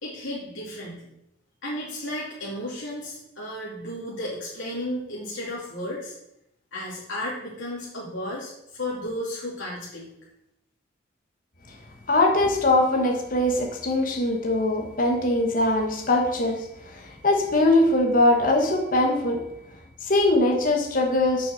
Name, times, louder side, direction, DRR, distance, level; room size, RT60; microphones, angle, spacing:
voice 1, 0.0-1.1 1.6-6.1 6.7-10.1, left 1 dB, 90° left, -6 dB, 2.6 m, -33 dB
voice 2, 12.1-16.6 17.2-19.4 20.1-21.5, left 2 dB, 45° left, 3 dB, 1.2 m, -21 dB
6.9 x 6.1 x 6.2 m, 0.81 s
head